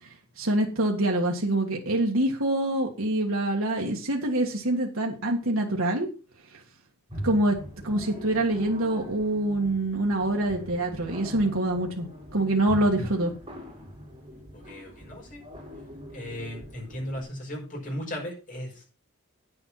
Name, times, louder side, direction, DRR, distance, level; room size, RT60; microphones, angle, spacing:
voice 1, 0.4-6.1 7.2-7.6 7.8-13.3, right 1 dB, 65° right, -1 dB, 2.0 m, -25 dB
sound 1, 7.1-17.2, equal, 25° right, 5.6 m, -42 dB
voice 2, 14.5-15.4 16.1-18.8, equal, 35° left, -1 dB, 6.0 m, -36 dB
9.5 x 7.8 x 5.8 m, 0.34 s
head